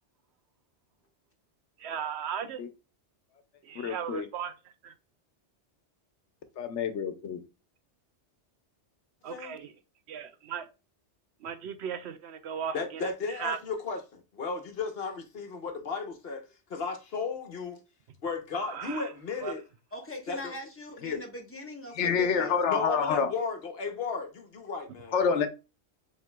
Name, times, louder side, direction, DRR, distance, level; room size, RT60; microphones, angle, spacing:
voice 1, 1.8-2.6 3.6-4.5 4.8-4.9 9.2-9.7 10.1-10.7 11.4-13.0 13.4-13.6 18.6-19.1 19.4-19.5, right 8 dB, 75° right, 0.8 m, -36 dB
voice 2, 3.7-4.3 6.6-7.4 21.0-21.2 22.0-23.3 25.1-25.5, left 6 dB, 85° left, 1.0 m, -27 dB
voice 3, 12.7-17.8 18.2-19.6 20.3-20.6 22.7-25.5, left 4 dB, 60° left, 1.1 m, -35 dB
voice 4, 19.9-22.5, equal, 10° left, 1.2 m, -41 dB
7.2 x 3.2 x 2.2 m
omnidirectional pair, 1.2 m